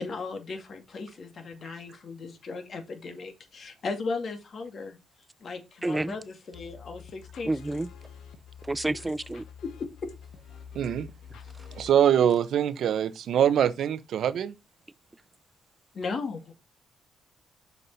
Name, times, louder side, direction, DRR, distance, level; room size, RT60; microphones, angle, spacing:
voice 1, 0.0-5.0 5.4-7.8 9.6-9.7 15.9-16.5, left 4 dB, 50° left, 2.1 m, -36 dB
voice 2, 5.8-6.2 7.4-7.9 8.7-9.4, right 2 dB, 15° right, 0.4 m, -29 dB
sound 1, 6.5-11.9, left 7 dB, 75° left, 1.0 m, -47 dB
voice 3, 10.7-11.1 11.7-14.5, right 9 dB, 70° right, 0.8 m, -23 dB
6.8 x 5.4 x 4.1 m
cardioid pair, 90°, 0 cm